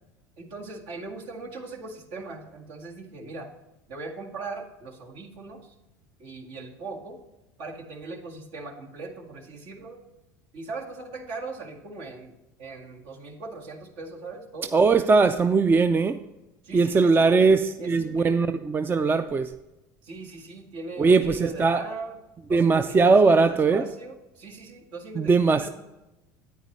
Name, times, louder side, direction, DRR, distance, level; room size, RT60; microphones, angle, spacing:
voice 1, 0.4-3.5 3.9-5.7 6.2-7.2 7.6-10.0 10.5-14.7 16.6-17.5 17.8-18.6 20.0-22.2 22.4-25.7, right 3 dB, 65° right, 2.0 m, -39 dB
voice 2, 14.7-16.2 16.7-19.5 21.0-21.8 22.5-23.8 25.2-25.7, right 4 dB, 20° right, 0.4 m, -20 dB
9.3 x 9.2 x 3.2 m
hypercardioid pair, 85°, 10 cm